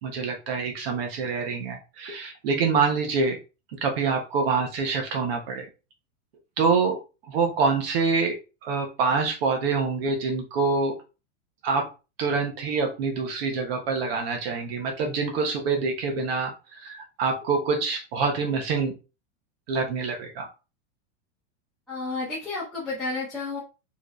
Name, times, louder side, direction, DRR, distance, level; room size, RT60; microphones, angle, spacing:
voice 1, 0.0-3.4 3.8-5.7 6.6-7.0 7.3-8.4 8.6-10.9 11.6-11.9 12.2-18.9 19.7-20.5, right 4 dB, 55° right, 3 dB, 1.1 m, -26 dB
voice 2, 21.9-23.6, left 3 dB, ahead, -11 dB, 1.1 m, -31 dB
4.5 x 3.3 x 3.1 m, 0.30 s
supercardioid pair, 175°, 36 cm